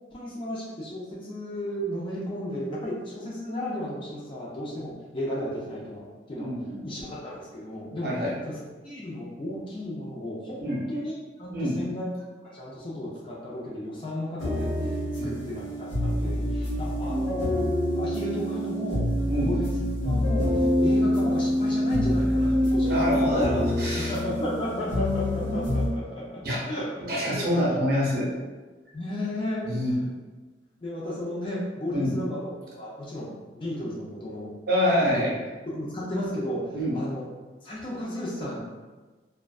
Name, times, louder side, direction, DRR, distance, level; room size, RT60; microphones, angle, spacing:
voice 1, 0.1-6.5 6.8-8.1 8.5-8.6 8.8-10.6 10.9-12.1 12.5-15.0 15.2-17.5 18.0-19.0 19.3-19.8 20.0-23.4 23.9-26.9 27.4-27.6 28.9-30.0 30.8-34.5 35.1-35.2 35.7-37.3 37.6-38.6, left 1 dB, 25° left, -5 dB, 0.4 m, -34 dB
voice 2, 6.3-6.9 8.0-8.3 10.6-10.8 11.5-11.8 15.2-15.4 19.3-19.5 22.9-24.1 26.4-26.6 27.0-28.3 29.6-30.0 31.9-32.2 34.7-35.3 36.7-37.0, equal, 55° right, -5 dB, 0.7 m, -26 dB
sound 1, 14.4-25.9, left 1 dB, 85° left, 0.8 m, -26 dB
2.5 x 2.2 x 2.3 m, 1.3 s
head